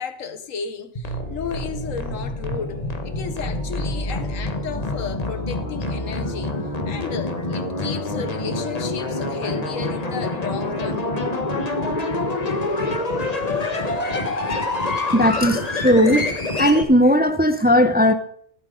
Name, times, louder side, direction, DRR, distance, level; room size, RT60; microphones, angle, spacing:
voice 1, 0.0-6.6 6.8-11.1, left 6 dB, 80° left, 1.5 m, -33 dB
sound 1, 1.0-16.8, left 2 dB, 30° left, 1.3 m, -26 dB
voice 2, 15.1-16.3 16.6-18.1, equal, 10° right, 0.6 m, -17 dB
14.5 x 12.0 x 3.9 m
omnidirectional pair, 1.4 m